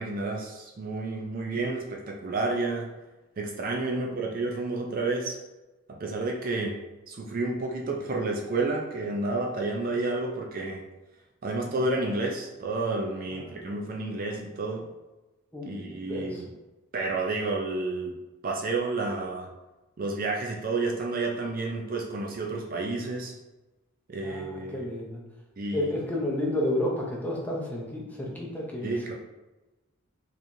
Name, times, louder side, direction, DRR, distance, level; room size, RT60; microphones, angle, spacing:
voice 1, 0.0-2.9 3.4-5.4 5.9-6.8 7.1-10.8 11.4-14.9 15.7-16.5 16.9-18.1 18.4-19.5 20.0-23.3 24.1-24.9 25.6-25.9 28.8-29.1, right 3 dB, 40° right, 0 dB, 0.4 m, -30 dB
voice 2, 3.9-4.2 13.4-13.7 15.5-16.4 24.2-25.2 25.7-29.1, left 1 dB, 5° left, -3 dB, 0.6 m, -32 dB
4.7 x 2.9 x 2.6 m, 1.1 s
head